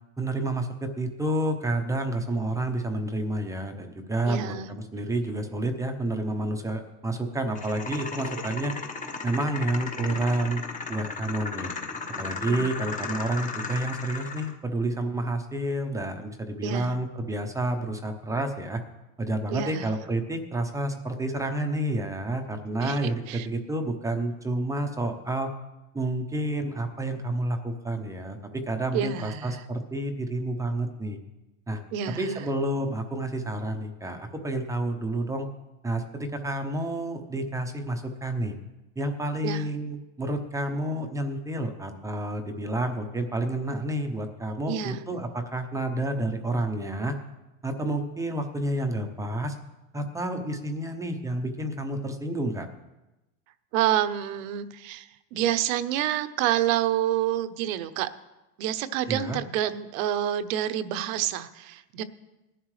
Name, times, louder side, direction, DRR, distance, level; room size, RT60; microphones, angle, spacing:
voice 1, 0.2-8.7 9.2-10.6 10.9-11.7 12.2-18.8 19.2-25.5 25.9-31.2 31.7-31.8 32.1-35.5 35.8-38.5 39.0-47.2 47.6-49.6 49.9-52.7 59.1-59.4, right 1 dB, 5° right, 4 dB, 0.7 m, -29 dB
voice 2, 4.3-4.7 12.5-12.7 16.6-16.9 19.5-19.9 22.8-23.0 23.3-23.5 28.9-29.6 31.9-32.3 39.4-39.6 44.7-45.0 53.7-58.1 58.6-62.0, right 11 dB, 65° right, 12 dB, 0.9 m, -28 dB
sound 1, 7.6-14.5, left 4 dB, 20° left, 1.0 m, -35 dB
19.0 x 11.0 x 3.2 m, 1.0 s
supercardioid pair, 145°, 43 cm